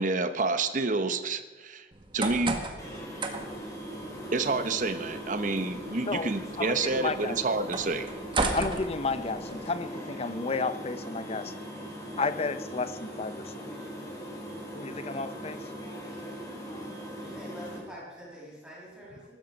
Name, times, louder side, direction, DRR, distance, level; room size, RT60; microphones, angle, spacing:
voice 1, 0.0-1.9 2.1-2.6 4.3-8.1, right 3 dB, 45° right, 10 dB, 0.9 m, -29 dB
sound 1, 1.9-9.7, right 2 dB, 30° right, 1.6 m, -36 dB
sound 2, 2.8-17.8, equal, 20° left, 3.8 m, -40 dB
voice 2, 6.6-7.4 8.5-11.5 12.2-13.7 14.7-15.7, left 3 dB, 35° left, 13 dB, 0.7 m, -32 dB
voice 3, 17.2-19.3, equal, 5° right, -7 dB, 6.9 m, -45 dB
19.5 x 12.0 x 5.3 m, 1.3 s
head